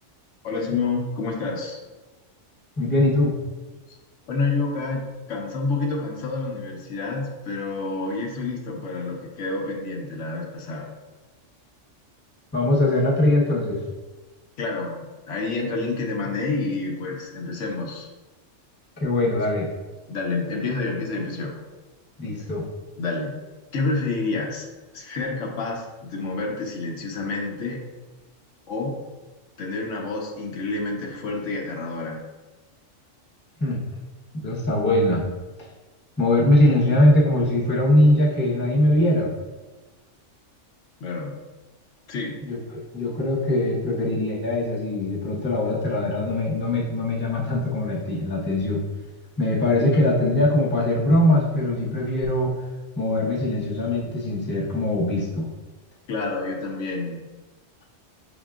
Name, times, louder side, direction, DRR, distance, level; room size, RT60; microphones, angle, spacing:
voice 1, 0.4-1.8 4.3-10.9 14.6-18.1 20.1-21.6 23.0-23.3 23.7-24.7 24.9-27.8 28.7-29.0 29.6-32.2 41.0-41.4 42.1-42.4 56.1-57.3, left 3 dB, 75° left, 1 dB, 1.0 m, -28 dB
voice 2, 2.8-3.3 12.5-13.8 19.0-19.7 22.2-22.7 33.6-33.8 34.3-35.2 36.2-39.3 42.4-48.8 49.4-52.5 53.0-55.4, left 1 dB, 10° left, -5 dB, 0.7 m, -21 dB
5.5 x 3.6 x 2.4 m, 1.2 s
omnidirectional pair, 1.3 m